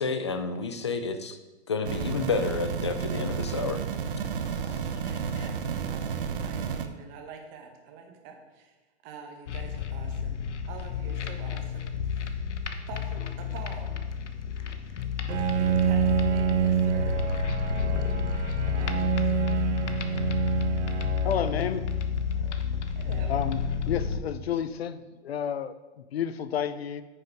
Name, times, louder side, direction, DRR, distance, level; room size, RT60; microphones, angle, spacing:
voice 1, 0.0-1.4 1.7-3.8 5.4-5.5, left 4 dB, 25° left, 9 dB, 0.3 m, -30 dB
sound 1, 1.8-6.9, right 6 dB, 50° right, 0.8 m, -31 dB
voice 2, 4.6-8.7 9.0-10.4 10.7-12.3 12.9-13.9 15.5-17.2 18.8-19.5 22.9-23.4, right 5 dB, 20° right, 3 dB, 1.0 m, -46 dB
sound 2, 9.5-24.2, left 6 dB, 80° left, 1.1 m, -30 dB
Bowed string instrument, 15.3-22.4, right 10 dB, 80° right, 0.9 m, -28 dB
voice 3, 21.2-21.9 23.3-23.6 23.9-27.0, left 9 dB, 60° left, 14 dB, 0.7 m, -31 dB
9.3 x 6.7 x 5.2 m, 1.2 s
hypercardioid pair, 165°, 35 cm